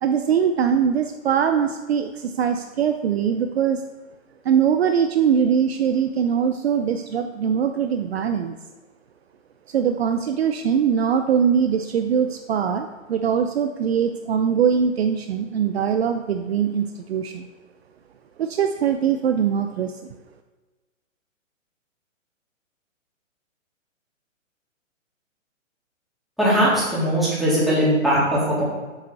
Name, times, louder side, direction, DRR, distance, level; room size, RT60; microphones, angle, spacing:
voice 1, 0.0-3.8 4.4-8.6 9.7-17.5 18.4-20.0, right 7 dB, 50° right, 7 dB, 0.7 m, -22 dB
voice 2, 26.4-28.6, equal, ahead, -9 dB, 3.4 m, -20 dB
8.3 x 6.6 x 6.9 m, 1.3 s
hypercardioid pair, 145°, 39 cm